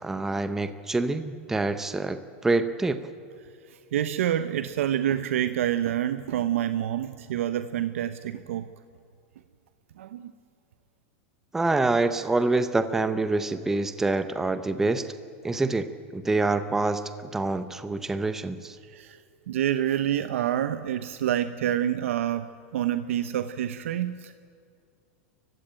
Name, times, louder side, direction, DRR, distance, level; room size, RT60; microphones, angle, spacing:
voice 1, 0.0-3.0 11.5-15.1 15.4-17.0 17.3-18.8, right 3 dB, 5° right, 11 dB, 0.7 m, -26 dB
voice 2, 3.7-8.7 10.0-10.3 18.8-19.2 19.5-24.3, right 11 dB, 80° right, 12 dB, 0.8 m, -27 dB
29.0 x 15.5 x 8.9 m, 2.4 s
supercardioid pair, 160°, 7 cm